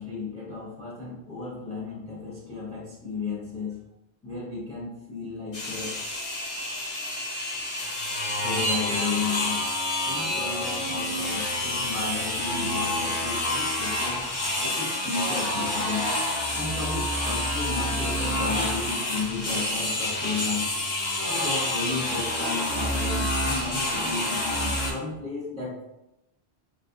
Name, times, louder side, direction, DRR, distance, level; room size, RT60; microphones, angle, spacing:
voice 1, 0.0-3.8 4.2-6.0 8.4-9.7 10.0-14.2 14.6-16.1 16.5-20.7 21.2-25.8, left 4 dB, 5° left, -6 dB, 0.6 m, -34 dB
sound 1, 5.5-24.9, left 1 dB, 75° left, 1.2 m, -28 dB
3.7 x 2.5 x 2.4 m, 0.88 s
omnidirectional pair, 1.1 m